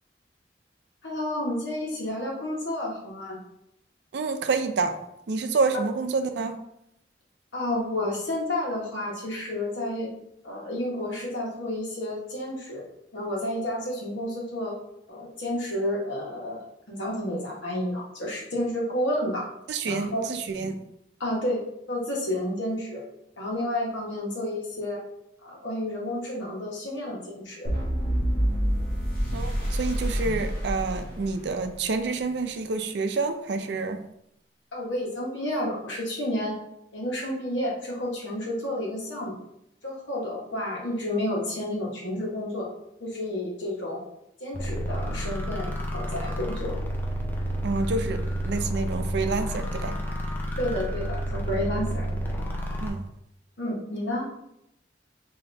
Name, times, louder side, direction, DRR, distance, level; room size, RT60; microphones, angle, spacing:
voice 1, 1.0-3.4 5.7-5.8 7.5-10.1 10.4-12.8 13.1-14.8 15.1-19.5 19.8-20.3 21.2-21.6 21.9-23.0 23.4-25.0 25.4-27.7 34.7-36.6 36.9-39.4 39.8-42.7 43.0-44.0 44.4-46.7 50.6-52.3 53.6-54.2, left 1 dB, 85° left, -2 dB, 1.2 m, -30 dB
voice 2, 4.1-5.0 5.3-6.6 19.7-20.8 29.3-34.0 47.6-50.0 52.8-53.0, right 4 dB, 70° right, 8 dB, 0.4 m, -28 dB
sound 1, 27.6-31.8, equal, 50° left, 1.1 m, -27 dB
sound 2, 44.5-52.9, equal, 10° left, 0.5 m, -30 dB
4.1 x 2.8 x 3.3 m, 0.80 s
head